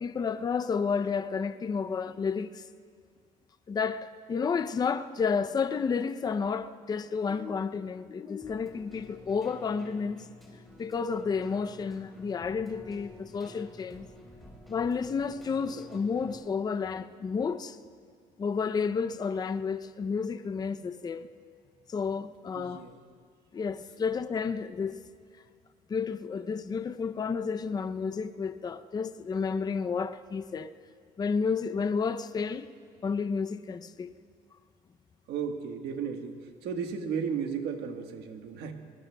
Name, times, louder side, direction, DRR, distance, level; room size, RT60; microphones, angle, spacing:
voice 1, 0.0-2.6 3.7-10.3 10.8-14.1 14.7-17.8 18.4-21.3 21.9-22.8 23.5-25.0 25.9-30.7 31.2-32.7 33.0-34.1, left 5 dB, 25° left, 0.4 m, -31 dB
Keyboard (musical), 8.4-16.4, left 1 dB, ahead, 3.8 m, -51 dB
voice 2, 22.6-22.9 35.3-36.4 36.6-38.7, right 6 dB, 75° right, 1.3 m, -34 dB
22.0 x 20.5 x 2.2 m
cardioid pair, 110°, 17 cm